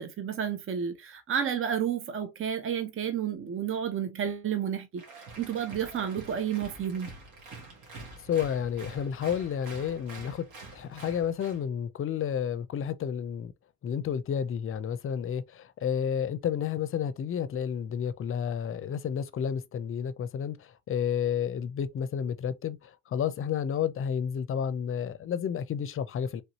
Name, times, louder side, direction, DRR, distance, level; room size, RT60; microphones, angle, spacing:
voice 1, 0.0-7.1, right 8 dB, 45° right, 0.7 m, -31 dB
Applause, 5.0-11.6, right 3 dB, 85° right, 1.5 m, -46 dB
voice 2, 8.2-10.5 10.7-13.5 13.8-26.4, left 8 dB, 45° left, 0.5 m, -31 dB
3.2 x 2.7 x 3.0 m
cardioid pair, 90°, 30 cm